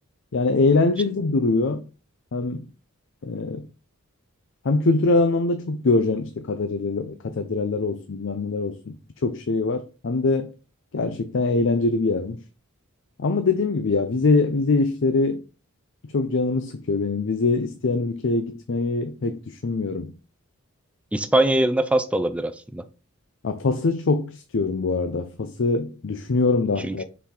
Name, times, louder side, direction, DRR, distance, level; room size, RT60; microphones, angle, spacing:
voice 1, 0.3-1.8 2.3-2.7 3.2-3.7 4.6-9.0 9.2-10.5 10.9-12.4 13.2-15.4 16.1-20.1 23.4-27.0, left 3 dB, 60° left, 0.5 m, -23 dB
voice 2, 21.1-22.8 26.8-27.1, right 1 dB, 5° right, 0.4 m, -22 dB
5.8 x 4.1 x 4.3 m
head